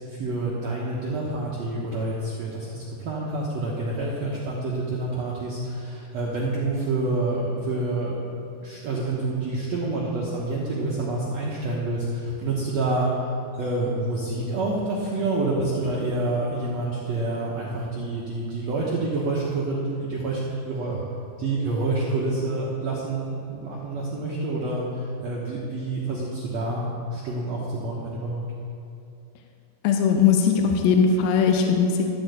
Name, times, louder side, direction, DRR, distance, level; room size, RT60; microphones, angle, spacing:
voice 1, 0.1-8.1 8.6-13.3 13.6-20.4 20.6-21.0 21.4-28.4, right 2 dB, 70° right, -5 dB, 1.6 m, -28 dB
voice 2, 29.8-32.1, left 6 dB, 75° left, 3 dB, 2.4 m, -19 dB
14.0 x 4.7 x 8.0 m, 2.6 s
omnidirectional pair, 4.6 m